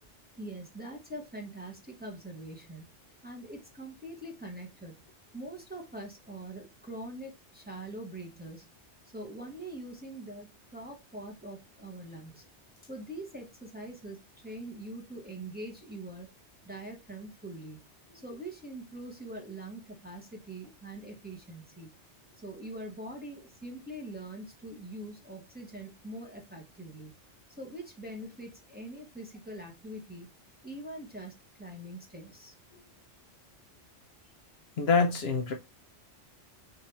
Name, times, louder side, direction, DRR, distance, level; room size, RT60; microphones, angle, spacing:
voice 1, 0.4-3.0 3.2-5.1 5.3-8.8 9.1-12.5 12.9-16.3 16.6-17.8 18.1-22.0 22.3-27.1 27.6-30.3 30.6-32.5, right 1 dB, 10° right, 1.1 m, -43 dB
voice 2, 34.8-35.5, left 4 dB, 65° left, 0.9 m, -25 dB
3.9 x 2.8 x 4.2 m
omnidirectional pair, 1.2 m